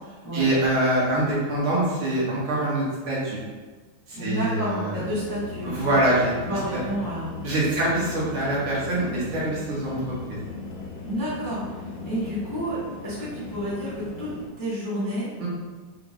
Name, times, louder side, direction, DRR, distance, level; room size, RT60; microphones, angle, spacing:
voice 1, 0.3-3.4 4.1-5.0 5.6-6.8 7.4-10.0 15.4-15.5, right 1 dB, 75° right, -7 dB, 2.1 m, -24 dB
voice 2, 4.1-6.0 6.4-7.3 7.8-7.9 11.0-11.8 12.0-12.8 13.0-14.3 14.6-15.3, equal, 25° left, -10 dB, 0.4 m, -30 dB
sound 1, 4.9-14.5, left 4 dB, 70° left, 1.2 m, -38 dB
4.9 x 2.4 x 3.5 m, 1.4 s
omnidirectional pair, 2.3 m